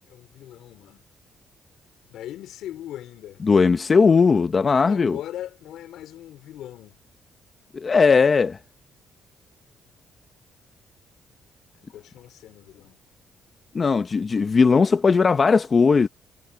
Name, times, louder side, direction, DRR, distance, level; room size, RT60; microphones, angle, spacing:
voice 1, 0.0-1.1 2.1-3.4 4.9-7.0 11.7-13.0, left 12 dB, 80° left, 4.0 m, -39 dB
voice 2, 3.4-5.2 7.7-8.6 13.7-16.1, left 5 dB, 35° left, 1.1 m, -18 dB
cardioid pair, 90°, 0 cm